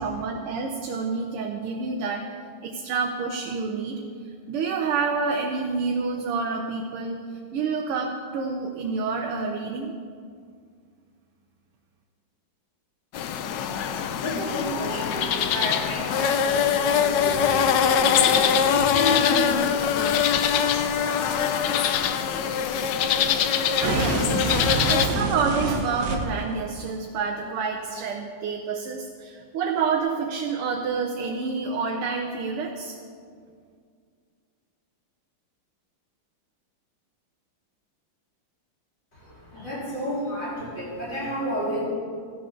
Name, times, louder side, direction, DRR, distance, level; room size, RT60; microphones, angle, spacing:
voice 1, 0.0-2.2 2.6-4.0 4.5-7.2 7.5-10.0 23.8-33.0, right 5 dB, 85° right, 2 dB, 1.8 m, -28 dB
sound 1, 13.1-25.1, left 8 dB, 70° left, 1.1 m, -23 dB
voice 2, 13.7-20.9 39.1-41.8, left 1 dB, 20° left, -8 dB, 3.9 m, -32 dB
sound 2, 23.8-26.5, right 3 dB, 60° right, 1.7 m, -27 dB
14.0 x 11.0 x 3.8 m, 2.1 s
omnidirectional pair, 2.4 m